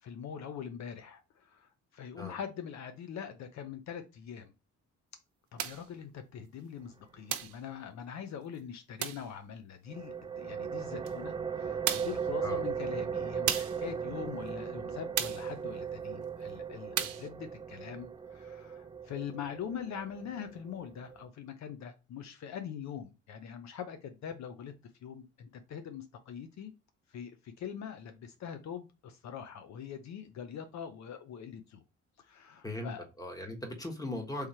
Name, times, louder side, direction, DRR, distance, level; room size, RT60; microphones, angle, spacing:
voice 1, 0.0-4.5 5.5-24.7 25.0-26.7 27.1-31.8 32.2-33.0, left 8 dB, 65° left, 0.6 m, -43 dB
sound 1, 5.6-5.9 7.3-7.6 9.0-9.3 11.1-11.2 11.9-12.2 13.5-13.8 15.2-15.5 17.0-17.3, right 11 dB, 75° right, 0.7 m, -33 dB
sound 2, 9.9-21.3, right 7 dB, 15° right, 0.4 m, -38 dB
voice 2, 33.2-34.5, left 1 dB, 10° left, 1.3 m, -38 dB
3.5 x 3.2 x 4.3 m
cardioid pair, 90°, 30 cm